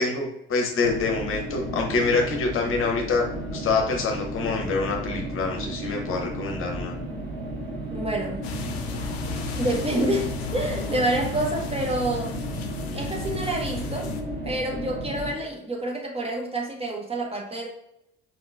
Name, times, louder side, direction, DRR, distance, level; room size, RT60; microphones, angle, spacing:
voice 1, 0.0-3.3 3.5-6.9, left 4 dB, 40° left, 1 dB, 1.0 m, -26 dB
sound 1, 0.8-15.3, right 1 dB, 70° right, 1.1 m, -34 dB
voice 2, 7.9-8.5 9.5-12.4 12.9-14.1 14.4-17.7, right 1 dB, 20° right, -1 dB, 1.3 m, -28 dB
sound 2, 8.4-14.2, left 5 dB, 75° left, 0.6 m, -34 dB
4.7 x 4.2 x 2.5 m, 0.81 s
figure-of-eight pair, 55°, 32 cm